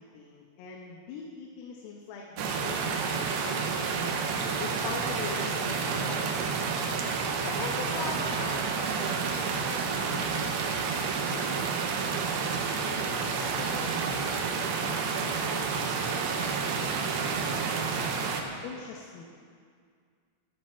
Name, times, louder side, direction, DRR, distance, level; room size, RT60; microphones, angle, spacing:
voice 1, 0.1-6.5 7.4-8.7 9.0-10.7 11.1-11.7 12.8-14.0 14.8-15.0 15.3-16.8 17.2-17.4 18.6-19.3, left 5 dB, 80° left, 0 dB, 3.8 m, -42 dB
sound 1, 2.4-18.4, right 5 dB, 80° right, 2.2 m, -30 dB
19.0 x 12.5 x 4.5 m, 2.1 s
omnidirectional pair, 6.0 m